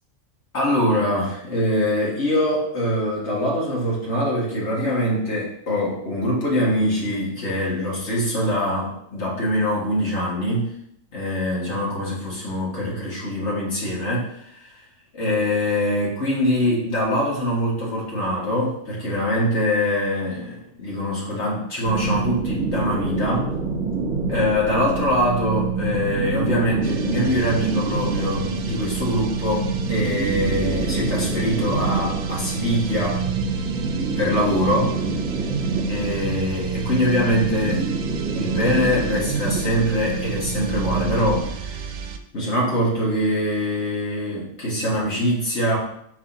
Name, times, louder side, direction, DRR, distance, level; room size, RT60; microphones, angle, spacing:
voice 1, 0.5-10.7 11.1-14.7 15.1-23.5 24.3-33.2 34.2-35.0 35.9-37.9 38.3-42.0 42.3-45.8, left 1 dB, 55° left, -5 dB, 1.9 m, -23 dB
sound 1, 21.8-41.4, right 4 dB, 65° right, 1.6 m, -26 dB
sound 2, 26.8-42.3, right 6 dB, 80° right, 0.4 m, -34 dB
7.3 x 5.9 x 2.7 m, 0.74 s
omnidirectional pair, 1.4 m